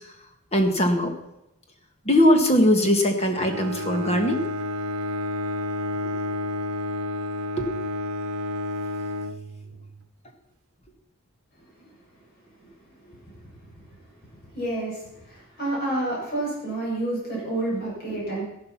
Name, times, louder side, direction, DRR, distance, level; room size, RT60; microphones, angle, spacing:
voice 1, 0.5-1.1 2.1-4.4 7.6-7.7, equal, 30° left, 4 dB, 1.9 m, -20 dB
Bowed string instrument, 3.3-10.0, left 1 dB, 90° right, 0.8 m, -30 dB
voice 2, 13.0-13.5 14.5-18.4, right 2 dB, 45° left, -5 dB, 7.6 m, -29 dB
14.0 x 11.5 x 6.0 m, 0.86 s
head